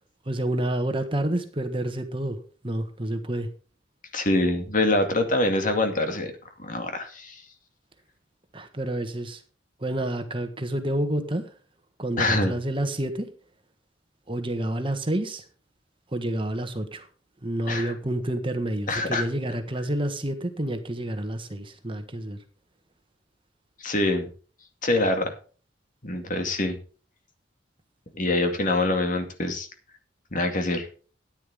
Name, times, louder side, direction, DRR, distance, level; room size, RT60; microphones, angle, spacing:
voice 1, 0.2-2.4 2.6-3.5 8.5-9.4 9.8-11.5 12.0-13.3 14.3-15.4 16.1-17.1 17.4-22.4, right 1 dB, 30° right, 7 dB, 1.5 m, -29 dB
voice 2, 4.1-6.3 6.6-7.4 12.2-12.5 17.7-17.9 18.9-19.2 23.8-24.3 24.8-25.3 26.0-26.8 28.1-29.7 30.3-30.9, left 2 dB, 45° left, 6 dB, 2.3 m, -25 dB
13.5 x 10.0 x 3.6 m, 0.38 s
head